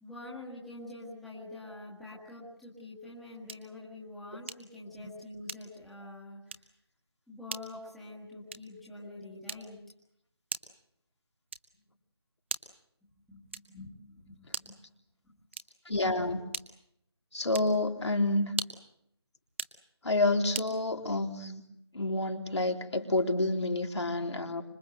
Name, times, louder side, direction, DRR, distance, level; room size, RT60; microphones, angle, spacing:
voice 1, 0.0-6.7 7.3-9.8 13.3-14.9 15.2-15.3, left 2 dB, ahead, -10 dB, 1.8 m, -46 dB
sound 1, 3.5-3.8 4.5-4.8 5.5-5.9 6.5-6.8 7.5-7.8 8.5-8.8 9.5-9.9 10.5-10.9 11.5-11.9 12.5-12.9 13.5-13.9 14.5-14.9 15.5-15.9 16.5-16.9 17.5-17.8 18.5-18.9 19.5-19.8 20.5-20.8, right 4 dB, 25° right, 1.1 m, -40 dB
voice 2, 15.9-16.4 17.3-18.5 20.0-21.6 21.9-24.6, left 2 dB, 75° left, 3 dB, 3.9 m, -29 dB
26.0 x 23.0 x 7.9 m, 0.76 s
figure-of-eight pair, 175°, 15 cm